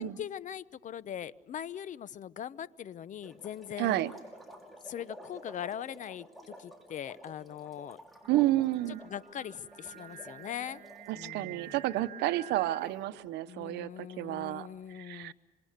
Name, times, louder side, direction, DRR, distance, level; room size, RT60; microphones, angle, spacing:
voice 1, 0.0-4.0 4.8-8.0 9.0-10.8 11.1-11.8 13.5-15.3, left 9 dB, 50° left, 18 dB, 0.8 m, -41 dB
sound 1, 3.2-11.3, equal, ahead, 5.7 m, -52 dB
voice 2, 3.8-4.1 8.3-9.0 11.1-14.7 14.9-15.3, right 15 dB, 85° right, 14 dB, 0.9 m, -30 dB
Singing, 8.2-13.3, right 11 dB, 55° right, 2.0 m, -49 dB
26.5 x 26.5 x 6.7 m, 1.2 s
cardioid pair, 110°, 17 cm